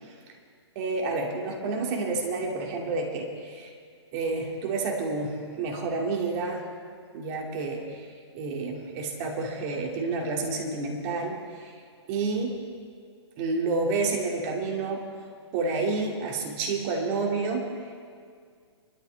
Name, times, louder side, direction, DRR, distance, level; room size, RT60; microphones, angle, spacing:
voice 1, 0.7-3.7 4.1-6.6 7.1-8.0 8.3-11.7 12.1-12.5 13.4-15.0 15.5-17.6, right 3 dB, 35° right, 0 dB, 2.7 m, -29 dB
26.0 x 12.5 x 3.6 m, 2.1 s
figure-of-eight pair, 120°, 15 cm